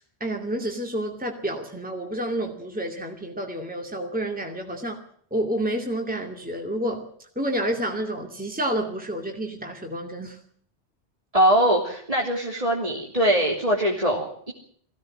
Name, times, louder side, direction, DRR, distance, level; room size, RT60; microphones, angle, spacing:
voice 1, 0.2-5.0 5.3-7.1 7.4-10.4, right 1 dB, 5° right, 2 dB, 2.5 m, -29 dB
voice 2, 11.3-14.5, right 1 dB, 30° right, -2 dB, 3.4 m, -22 dB
22.5 x 16.5 x 7.5 m, 0.62 s
omnidirectional pair, 1.2 m